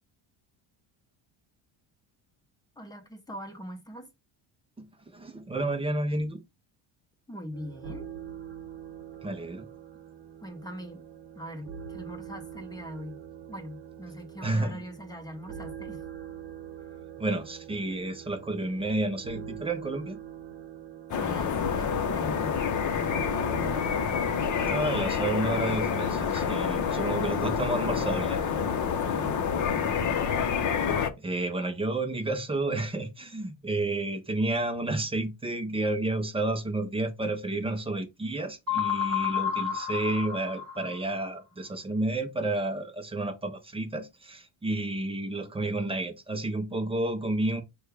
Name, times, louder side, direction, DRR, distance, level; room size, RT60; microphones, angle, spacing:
voice 1, 2.8-4.1 7.3-8.1 10.4-11.0 11.3-13.2 13.5-16.0 21.1-22.6 29.1-29.3, equal, 10° left, 0.8 m, -41 dB
voice 2, 4.8-6.4 9.2-9.7 14.4-14.8 17.2-20.2 24.6-28.5 31.2-47.6, right 2 dB, 15° right, 0.5 m, -31 dB
sound 1, 7.5-25.6, right 9 dB, 60° right, 0.9 m, -44 dB
sound 2, 21.1-31.1, left 6 dB, 40° left, 0.7 m, -28 dB
sound 3, 38.7-41.3, left 9 dB, 40° right, 1.2 m, -30 dB
6.3 x 2.3 x 3.3 m
cardioid pair, 160°, 47 cm